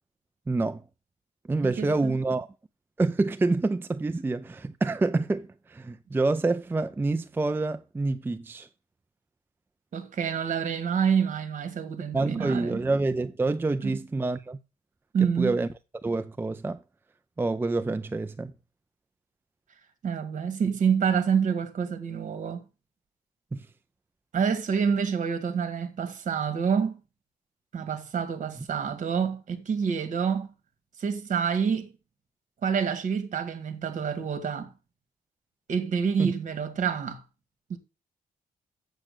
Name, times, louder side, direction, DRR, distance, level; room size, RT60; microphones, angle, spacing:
voice 1, 0.5-0.8 1.5-2.5 3.0-8.7 12.1-14.6 15.4-15.7 16.0-16.8 17.4-18.5 23.5-23.7 36.2-36.3, right 3 dB, 15° right, 0.4 m, -27 dB
voice 2, 1.6-2.2 9.9-12.8 13.8-13.9 15.1-15.6 20.0-22.6 24.3-27.0 27.7-30.5 31.0-31.9 32.6-34.7 35.7-37.2 37.7-37.8, right 6 dB, 55° right, 1.9 m, -27 dB
7.7 x 7.3 x 6.7 m
cardioid pair, 110°, 15 cm